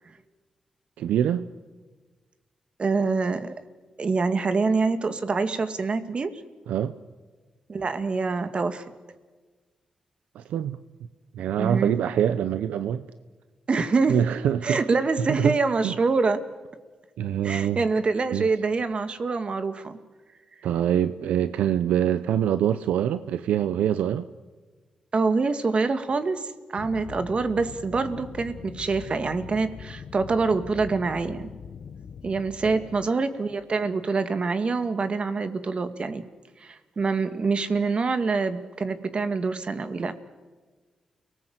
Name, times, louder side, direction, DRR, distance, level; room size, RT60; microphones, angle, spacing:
voice 1, 1.0-1.5 6.7-7.0 10.3-10.8 11.3-13.0 14.1-14.8 15.2-15.6 15.8-16.0 17.2-17.9 18.3-18.5 20.6-24.3 32.6-32.9, right 10 dB, 90° right, 12 dB, 0.7 m, -25 dB
voice 2, 2.8-3.5 4.0-6.3 7.7-8.8 11.6-12.0 13.7-14.2 14.6-16.4 17.4-20.0 25.1-31.5 32.2-36.2 36.6-40.1, right 4 dB, 50° right, 9 dB, 2.2 m, -25 dB
sound 1, 26.8-33.1, left 6 dB, 75° left, 1.2 m, -42 dB
29.5 x 19.0 x 8.1 m, 1.4 s
supercardioid pair, 50°, 2 cm